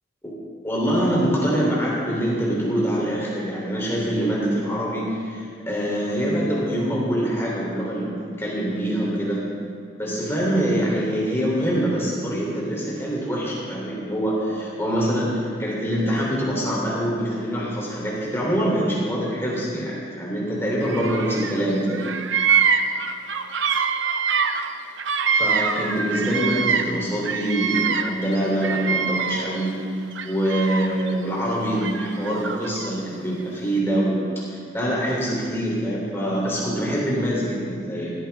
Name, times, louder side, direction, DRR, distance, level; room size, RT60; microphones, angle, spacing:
voice 1, 0.6-9.4 10.0-22.1 25.3-38.1, equal, 15° left, -5 dB, 3.2 m, -24 dB
Bird vocalization bird call bird song, 20.9-21.6 21.9-27.0 27.2-29.7 30.1-31.1 31.8-32.9, right 6 dB, 80° right, 0.7 m, -24 dB
17.5 x 14.0 x 3.5 m, 2.2 s
head